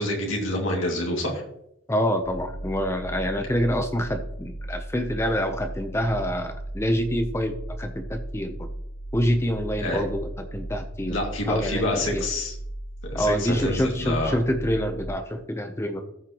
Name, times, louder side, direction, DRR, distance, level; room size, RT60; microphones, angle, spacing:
voice 1, 0.0-1.4 9.8-10.0 11.1-12.5 13.1-14.3, left 1 dB, 80° left, -1 dB, 2.3 m, -27 dB
voice 2, 1.9-8.7 9.1-11.2 11.5-12.2 13.1-16.0, equal, 15° left, 6 dB, 0.7 m, -26 dB
sound 1, 2.2-15.1, right 1 dB, 45° left, 0.9 m, -36 dB
14.0 x 6.5 x 3.0 m, 0.76 s
head